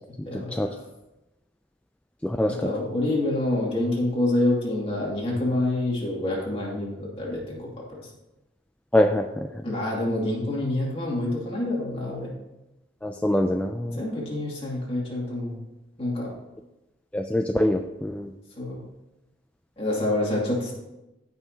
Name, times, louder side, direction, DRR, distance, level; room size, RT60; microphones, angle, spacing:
voice 1, 0.3-0.8 2.5-8.1 9.6-12.3 13.9-15.6 16.0-16.3 18.6-18.8 19.8-20.7, left 1 dB, 30° left, -4 dB, 2.4 m, -27 dB
voice 2, 2.2-2.5 8.9-9.5 13.0-14.0 17.1-18.3, left 1 dB, 5° left, 4 dB, 0.3 m, -24 dB
15.0 x 5.6 x 2.8 m, 0.98 s
head